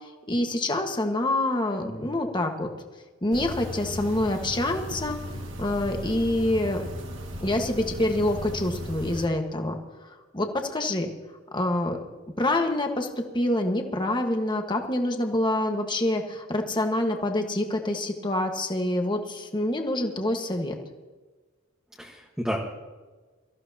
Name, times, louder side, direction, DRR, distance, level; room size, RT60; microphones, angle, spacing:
voice 1, 0.3-2.7 3.2-5.2 5.6-6.8 7.4-9.7 10.3-11.1 11.5-12.0 12.4-13.1 13.3-20.7, left 1 dB, 20° left, 3 dB, 1.5 m, -26 dB
voice 2, 1.8-2.1 22.0-22.6, equal, 5° right, -3 dB, 1.4 m, -32 dB
sound 1, 3.3-9.3, equal, 60° right, 2.1 m, -36 dB
24.5 x 14.5 x 2.9 m, 1.3 s
head